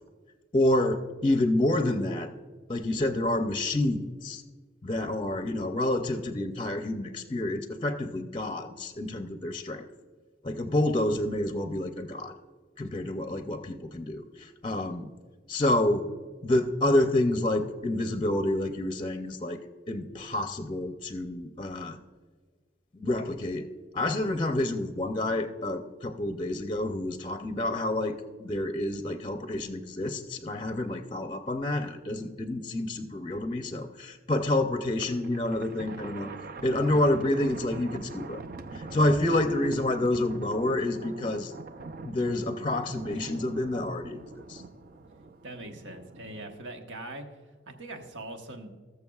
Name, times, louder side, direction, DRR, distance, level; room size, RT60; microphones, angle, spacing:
voice 1, 0.5-2.3 2.7-4.4 4.8-9.9 10.4-12.3 12.8-15.1 15.5-16.0 16.4-19.6 19.9-22.0 22.9-23.7 23.9-28.1 28.4-36.3 36.6-38.4 38.7-41.5 42.0-44.2 44.5-44.6, left 1 dB, 25° left, 7 dB, 0.6 m, -28 dB
Thunder, 34.8-46.6, right 3 dB, 50° right, 0.5 m, -43 dB
voice 2, 45.4-47.3 47.7-48.7, right 1 dB, 80° right, 4 dB, 1.3 m, -41 dB
20.0 x 6.7 x 2.4 m, 1.4 s
head